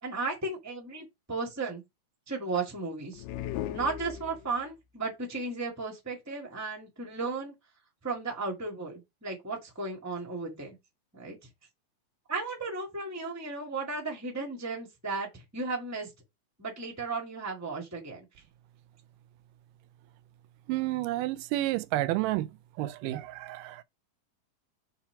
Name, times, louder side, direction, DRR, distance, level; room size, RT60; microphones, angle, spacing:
voice 1, 0.0-1.8 2.3-3.2 3.7-7.5 8.0-10.8 11.1-11.5 12.3-16.1 16.6-18.3, right 3 dB, 10° right, 0.7 m, -35 dB
sound 1, 3.1-4.7, left 12 dB, 80° left, 2.2 m, -37 dB
voice 2, 20.7-22.5 22.8-23.8, right 16 dB, 80° right, 2.0 m, -30 dB
5.8 x 3.6 x 5.8 m
omnidirectional pair, 4.1 m